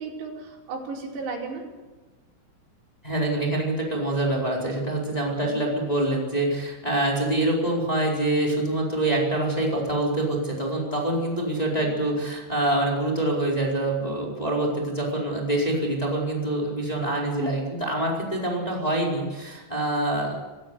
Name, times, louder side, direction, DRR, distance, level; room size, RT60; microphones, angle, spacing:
voice 1, 0.0-1.7 5.4-5.5 11.8-12.0 17.3-17.5, right 3 dB, 85° right, -2 dB, 7.5 m, -34 dB
voice 2, 3.0-20.3, right 1 dB, 10° left, -2 dB, 4.1 m, -25 dB
27.5 x 15.5 x 8.3 m, 1.2 s
omnidirectional pair, 6.0 m